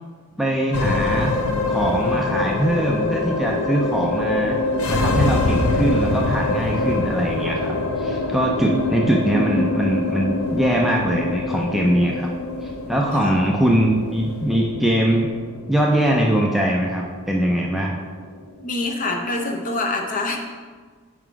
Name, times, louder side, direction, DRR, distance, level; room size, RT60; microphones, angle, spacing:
voice 1, 0.4-1.3 1.7-4.6 4.9-12.3 12.6-15.3 15.7-18.0, right 1 dB, ahead, -2 dB, 0.4 m, -22 dB
sound 1, 0.7-19.2, left 2 dB, 75° left, 0.6 m, -25 dB
voice 2, 18.6-20.4, left 2 dB, 35° left, 2 dB, 0.7 m, -25 dB
6.0 x 4.9 x 4.6 m, 1.5 s
head